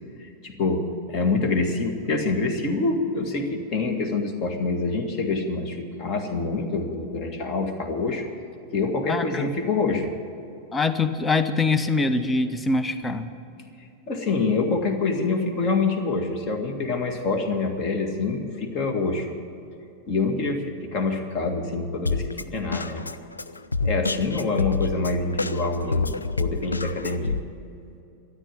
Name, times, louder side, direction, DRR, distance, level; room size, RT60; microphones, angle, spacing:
voice 1, 0.2-0.8 1.1-8.3 8.7-10.1 14.1-19.3 20.1-23.0 23.8-27.4, left 3 dB, 40° left, 5 dB, 1.9 m, -26 dB
voice 2, 9.1-9.5 10.7-13.3, left 3 dB, 15° left, 11 dB, 0.9 m, -23 dB
Drum kit, 22.1-27.4, left 4 dB, 80° left, 0.5 m, -28 dB
13.5 x 9.9 x 9.2 m, 2.7 s
figure-of-eight pair, 90°, 0 cm